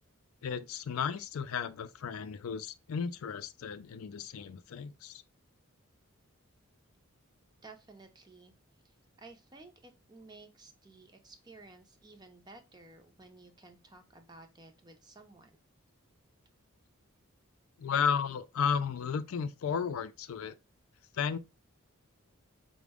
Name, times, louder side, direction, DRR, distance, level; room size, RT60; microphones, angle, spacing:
voice 1, 0.4-5.2 17.8-20.5 21.1-21.4, left 6 dB, 80° left, 0.4 m, -34 dB
voice 2, 7.6-8.5 8.8-15.5, right 3 dB, 20° right, 0.5 m, -54 dB
4.9 x 2.1 x 3.4 m
head